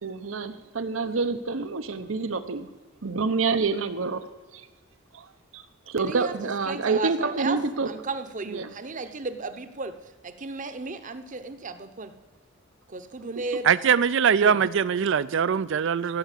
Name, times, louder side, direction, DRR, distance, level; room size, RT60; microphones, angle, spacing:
voice 1, 0.0-2.7 3.0-4.2 4.5-4.6 5.1-5.3 5.5-7.9 8.4-8.7, right 4 dB, 80° right, 11 dB, 0.8 m, -27 dB
voice 2, 6.0-6.3 6.7-7.6 7.9-9.9 10.2-12.1 12.9-13.7 14.3-14.6, right 3 dB, 40° right, 10 dB, 0.8 m, -34 dB
voice 3, 13.6-16.2, right 7 dB, 65° right, 18 dB, 0.4 m, -22 dB
15.5 x 5.8 x 8.2 m, 1.3 s
head